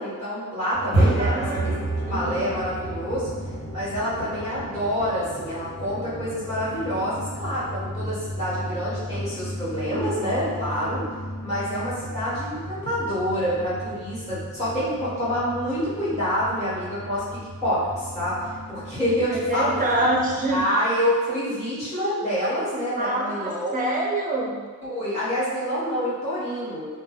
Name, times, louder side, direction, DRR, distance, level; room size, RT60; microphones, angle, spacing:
voice 1, 0.0-1.6 2.1-3.3 3.7-11.0 11.4-18.4 18.7-20.1 20.5-23.8 24.8-26.9, equal, 20° left, -11 dB, 1.5 m, -27 dB
sound 1, 0.7-20.6, right 1 dB, 45° left, 1.2 m, -32 dB
voice 2, 1.2-1.8 2.0-2.5 19.3-20.6 23.0-24.6, right 2 dB, 25° right, -3 dB, 0.5 m, -26 dB
2.5 x 2.1 x 3.7 m, 1.5 s
wide cardioid pair, 150°, 33 cm